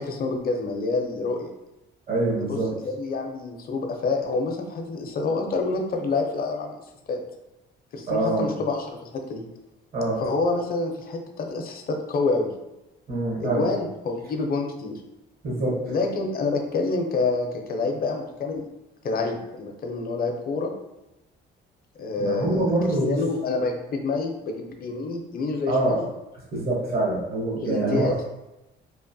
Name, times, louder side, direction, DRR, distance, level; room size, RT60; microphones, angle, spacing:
voice 1, 0.0-1.5 2.4-2.6 2.8-6.8 7.1-7.2 7.9-9.4 10.2-12.5 13.4-15.0 15.9-18.7 19.0-20.7 22.0-22.6 23.1-26.0 27.5-28.2, left 3 dB, 50° left, 3 dB, 0.5 m, -27 dB
voice 2, 2.1-2.7 8.1-8.5 9.9-10.2 13.1-13.7 15.4-15.9 22.2-23.2 25.7-26.0 26.5-28.2, right 2 dB, 50° right, -5 dB, 1.0 m, -25 dB
2.9 x 2.1 x 2.6 m, 0.95 s
cardioid pair, 90°, 20 cm